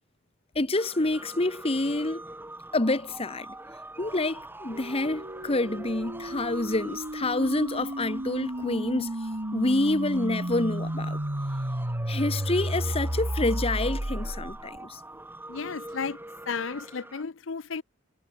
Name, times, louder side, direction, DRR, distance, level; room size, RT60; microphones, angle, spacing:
voice 1, 0.5-2.2 2.7-3.5 4.0-9.1 9.5-11.2 12.1-15.0, left 2 dB, 30° left, 1.2 m, -27 dB
sound 1, 0.7-17.2, right 1 dB, 10° right, 6.7 m, -44 dB
sound 2, 4.7-14.8, right 1 dB, 40° right, 2.0 m, -32 dB
voice 2, 15.5-16.2 16.5-17.8, left 5 dB, 75° left, 0.7 m, -33 dB
head